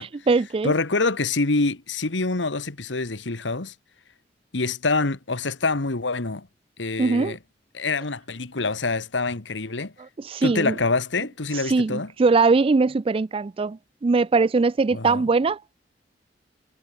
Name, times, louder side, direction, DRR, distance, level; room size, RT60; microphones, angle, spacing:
voice 1, 0.0-0.7 7.0-7.4 10.2-10.7 11.7-15.6, right 4 dB, 30° right, 0.4 m, -21 dB
voice 2, 0.6-3.7 4.5-6.5 6.8-7.4 7.7-9.9 10.4-12.1 14.9-15.2, left 3 dB, 85° left, 1.6 m, -26 dB
head